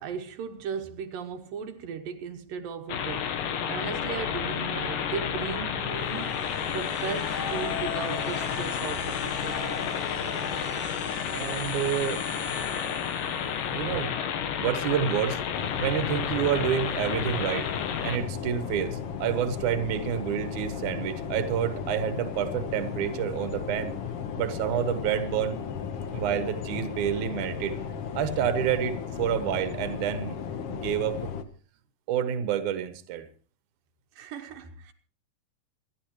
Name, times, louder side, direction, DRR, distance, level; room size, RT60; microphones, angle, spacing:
voice 1, 0.0-3.3 3.7-9.9 34.2-34.9, right 6 dB, 85° right, 2.9 m, -37 dB
sound 1, 2.9-18.2, left 8 dB, 80° left, 2.9 m, -31 dB
sound 2, 5.9-13.6, left 3 dB, 25° left, 5.4 m, -40 dB
voice 2, 11.3-12.2 13.7-14.2 14.6-15.4 15.8-17.7 18.0-24.0 24.4-25.6 26.1-27.8 28.2-30.4 30.7-31.2 32.1-33.3, right 9 dB, 70° right, 2.6 m, -28 dB
sound 3, 15.5-31.4, left 7 dB, 60° left, 1.7 m, -35 dB
27.0 x 11.0 x 3.1 m
omnidirectional pair, 3.9 m